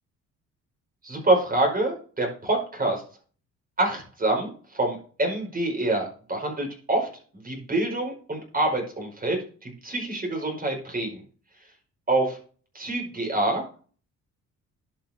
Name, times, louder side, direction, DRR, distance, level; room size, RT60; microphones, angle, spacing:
voice 1, 1.0-3.0 3.8-4.5 4.7-7.1 7.3-11.2 12.1-12.4 12.7-13.6, right 2 dB, 30° right, 1 dB, 5.0 m, -26 dB
11.5 x 6.0 x 3.7 m, 0.40 s
cardioid pair, 90°, 30 cm